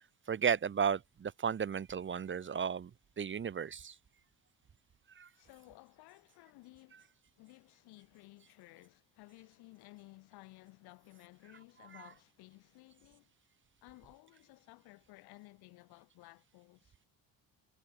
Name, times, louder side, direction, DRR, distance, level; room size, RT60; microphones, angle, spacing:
voice 1, 0.3-4.0 5.1-5.3 11.9-12.1, right 7 dB, 30° right, 1.0 m, -34 dB
voice 2, 5.3-13.3 13.8-16.9, left 21 dB, 85° left, 7.7 m, -57 dB
cardioid pair, 95°, 37 cm